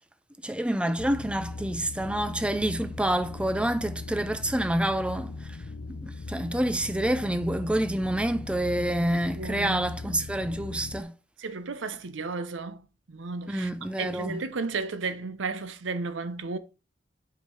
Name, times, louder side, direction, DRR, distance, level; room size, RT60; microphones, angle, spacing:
voice 1, 0.4-5.6 6.0-11.1 13.5-14.4, right 1 dB, 5° right, 0.3 m, -28 dB
sound 1, 1.0-11.0, left 3 dB, 90° left, 0.6 m, -39 dB
voice 2, 9.4-9.9 11.4-13.7 14.0-16.6, right 4 dB, 85° right, 0.7 m, -33 dB
5.4 x 5.0 x 4.5 m
head